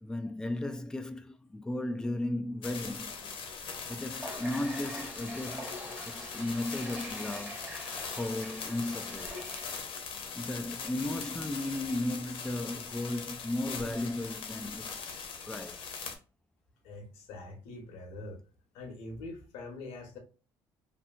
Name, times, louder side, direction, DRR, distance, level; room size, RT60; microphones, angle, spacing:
voice 1, 0.0-3.2 3.9-5.8 6.1-7.7 8.1-9.3 10.0-10.1 10.4-15.1 15.5-15.9, left 1 dB, 5° left, 0.3 m, -35 dB
sound 1, 2.6-16.2, left 5 dB, 60° left, 0.7 m, -41 dB
Water tap faucet, 4.0-9.8, equal, 15° right, 1.1 m, -44 dB
voice 2, 16.8-18.4 18.7-20.2, left 2 dB, 85° left, 0.9 m, -44 dB
2.7 x 2.5 x 2.3 m
supercardioid pair, 80°, 10 cm